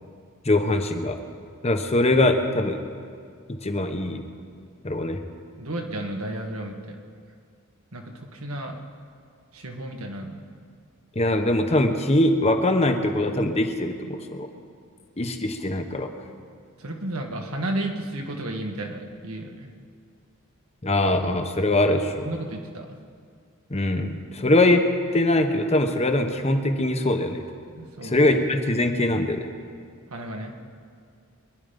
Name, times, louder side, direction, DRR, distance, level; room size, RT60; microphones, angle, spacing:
voice 1, 0.5-1.2 1.6-2.8 3.6-4.2 4.8-5.2 11.1-14.5 15.2-16.1 20.8-22.3 23.7-24.9 25.1-27.4 28.1-29.5, left 1 dB, 30° left, 6 dB, 1.0 m, -22 dB
voice 2, 5.6-7.0 7.9-8.8 9.5-10.4 16.8-19.7 22.2-23.0 27.8-28.2 30.1-30.5, right 1 dB, 90° right, 2 dB, 1.8 m, -33 dB
23.5 x 10.5 x 5.3 m, 2.2 s
head